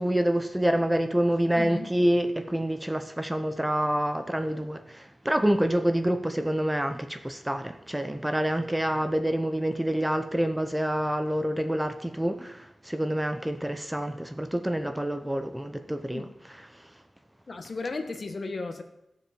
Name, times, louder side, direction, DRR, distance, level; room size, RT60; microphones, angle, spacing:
voice 1, 0.0-16.3 16.7-16.9, right 1 dB, 10° right, 0.8 m, -27 dB
voice 2, 1.5-1.9 16.1-16.2 17.5-18.8, left 3 dB, 50° left, 1.4 m, -34 dB
15.5 x 7.4 x 5.4 m
wide cardioid pair, 85°, 0 cm